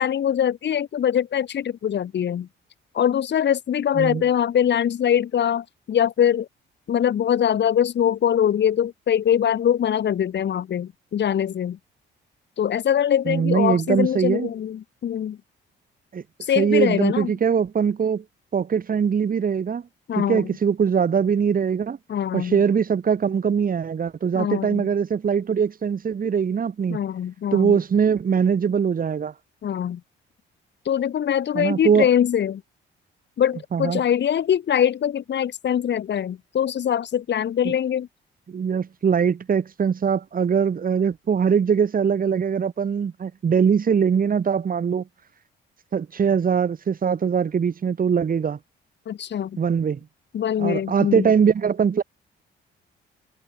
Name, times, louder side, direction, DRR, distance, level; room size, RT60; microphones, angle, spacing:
voice 1, 0.0-2.5 2.9-6.5 6.9-11.8 12.6-15.4 16.5-17.3 20.1-20.4 22.1-22.6 24.3-24.9 26.9-27.8 29.6-30.0 30.9-32.6 33.4-38.1 49.1-49.6 50.3-51.3, left 9 dB, 60° left, 5.6 m, -23 dB
voice 2, 13.3-14.5 16.1-16.2 16.6-18.2 18.5-19.8 20.2-22.0 22.3-27.0 27.5-29.3 31.5-32.1 33.7-34.0 37.6-37.7 38.5-45.0 45.9-48.6 49.6-50.0 50.6-52.0, right 7 dB, 45° right, 3.6 m, -22 dB
cardioid pair, 90°, 20 cm